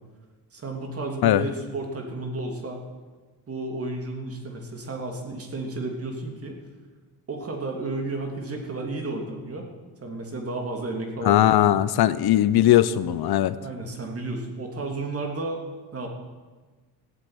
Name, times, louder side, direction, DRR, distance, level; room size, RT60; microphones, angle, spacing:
voice 1, 0.5-2.8 3.5-6.6 7.3-9.7 10.0-11.8 13.6-15.6 15.9-16.1, right 2 dB, 35° right, 2 dB, 3.0 m, -32 dB
voice 2, 11.2-13.6, left 13 dB, 65° left, 15 dB, 0.9 m, -19 dB
16.0 x 8.2 x 9.8 m, 1.3 s
cardioid pair, 125°, 40 cm